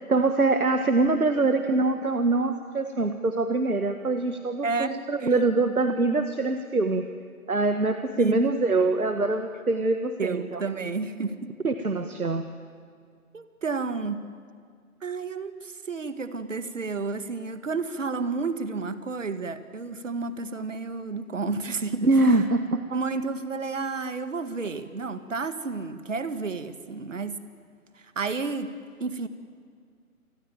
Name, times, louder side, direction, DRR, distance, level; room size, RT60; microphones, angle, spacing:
voice 1, 0.1-7.1 7.5-10.6 11.6-12.4 22.0-22.8, right 3 dB, 75° right, 8 dB, 1.7 m, -24 dB
voice 2, 4.6-5.3 8.2-8.6 10.2-11.5 13.3-14.2 15.0-22.1 22.9-27.4 27.9-28.7 29.0-29.3, right 4 dB, 60° right, 11 dB, 2.0 m, -31 dB
28.5 x 20.5 x 9.1 m, 2.1 s
figure-of-eight pair, 145°, 44 cm